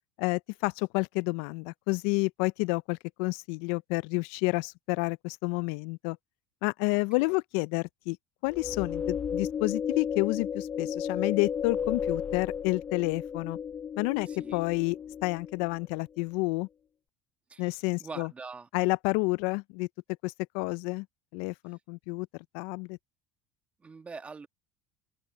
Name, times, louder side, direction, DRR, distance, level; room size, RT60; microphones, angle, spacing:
voice 1, 0.2-6.2 6.6-8.2 8.4-13.6 14.0-16.7 17.6-18.3 18.7-19.9 20.2-21.1 21.3-22.3 22.5-23.0, left 27 dB, 75° left, 0.4 m, -30 dB
sound 1, 8.5-15.8, left 7 dB, 25° left, 0.6 m, -34 dB
voice 2, 14.3-14.6 17.5-18.7 23.8-24.5, right 4 dB, 20° right, 1.6 m, -44 dB
open air
supercardioid pair, 125°, 7 cm